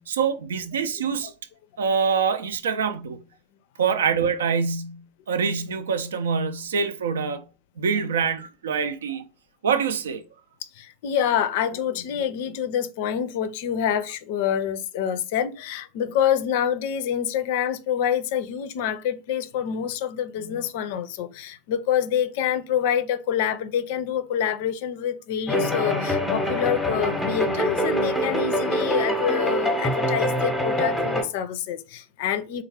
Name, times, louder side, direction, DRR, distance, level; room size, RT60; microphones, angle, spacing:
voice 1, 0.0-1.3 1.8-3.2 3.8-5.0 5.3-7.4 7.8-9.2 9.6-10.2, right 6 dB, 70° right, 0.4 m, -25 dB
voice 2, 10.7-32.6, left 9 dB, 55° left, 0.4 m, -26 dB
sound 1, 25.5-31.2, equal, 5° left, 0.8 m, -24 dB
3.3 x 2.3 x 3.4 m
figure-of-eight pair, 85°, 0 cm